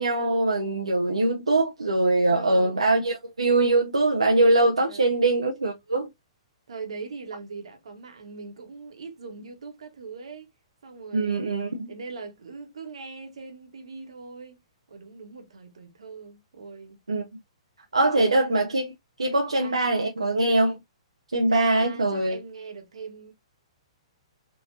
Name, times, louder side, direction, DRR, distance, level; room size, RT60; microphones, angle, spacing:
voice 1, 0.0-6.1 11.1-11.9 17.1-17.2 17.9-18.9 19.2-20.8 21.3-22.4, right 2 dB, 85° right, 0.6 m, -22 dB
voice 2, 2.2-2.9 4.8-5.1 6.7-10.5 10.8-11.5 11.9-14.6 14.9-17.0 18.0-18.7 19.5-19.8 21.4-23.3, right 4 dB, 70° right, 1.2 m, -41 dB
3.8 x 2.6 x 2.6 m
figure-of-eight pair, 120°, 3 cm